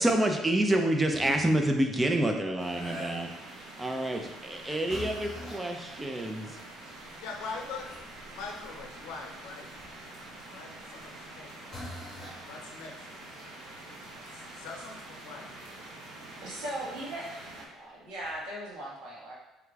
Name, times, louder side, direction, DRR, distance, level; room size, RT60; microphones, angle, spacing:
voice 1, 0.0-3.3 3.8-6.6, right 1 dB, 15° right, 3 dB, 0.5 m, -28 dB
sound 1, 1.0-1.6 2.7-3.5 4.0-4.3 4.9-5.7 6.5-6.6 7.0-10.2 11.1-11.3 11.7-12.4 15.7-15.8 17.5-17.6 18.2-18.4, left 1 dB, 25° left, 1.4 m, -43 dB
sound 2, 2.6-17.7, right 2 dB, 65° right, 0.8 m, -46 dB
voice 2, 4.7-5.0 7.2-8.0 8.3-9.6 10.5-12.0 12.5-13.0 13.4-13.6 14.3-15.5, left 4 dB, 80° left, 1 dB, 0.6 m, -43 dB
voice 3, 16.4-19.3, right 1 dB, 80° right, -6 dB, 1.4 m, -39 dB
4.8 x 3.5 x 2.3 m, 0.97 s
cardioid pair, 125°, 0 cm